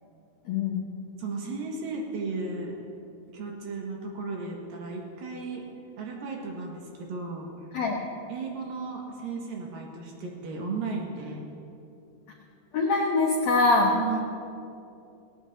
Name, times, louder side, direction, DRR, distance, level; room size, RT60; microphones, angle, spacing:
voice 1, 0.5-0.8 7.7-8.0 12.7-13.9, left 3 dB, 75° left, -1 dB, 1.5 m, -23 dB
voice 2, 1.2-2.7 3.3-5.6 6.0-7.5 8.3-11.4 13.8-14.2, right 4 dB, 65° right, -1 dB, 3.2 m, -35 dB
18.5 x 18.0 x 2.8 m, 2.7 s
omnidirectional pair, 4.6 m